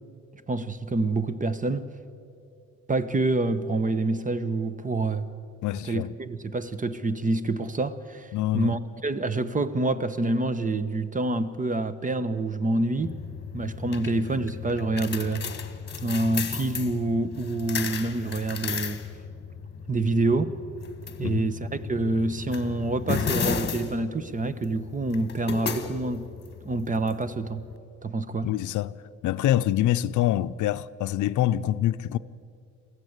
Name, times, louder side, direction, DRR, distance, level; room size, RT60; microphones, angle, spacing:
voice 1, 0.5-1.9 2.9-5.3 5.8-13.2 13.5-15.5 16.0-19.0 19.9-20.6 21.2-26.3 26.6-27.7 28.0-28.5, right 2 dB, 25° right, 1.1 m, -27 dB
voice 2, 5.6-6.1 8.3-8.8 21.2-21.5 28.4-29.0 29.2-32.2, left 13 dB, 75° left, 0.6 m, -25 dB
sound 1, 13.0-27.8, left 6 dB, 35° left, 1.6 m, -35 dB
23.0 x 15.0 x 8.1 m
cardioid pair, 90°, 30 cm